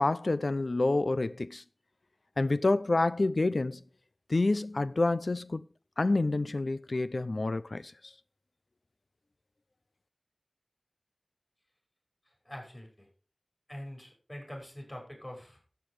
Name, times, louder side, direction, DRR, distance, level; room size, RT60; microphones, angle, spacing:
voice 1, 0.0-1.6 2.4-3.8 4.3-5.6 6.0-8.1, left 2 dB, 80° left, 0.6 m, -28 dB
voice 2, 12.4-13.1 13.7-15.6, equal, 25° left, 6.0 m, -44 dB
13.5 x 8.1 x 4.9 m
wide cardioid pair, 50°, 0 cm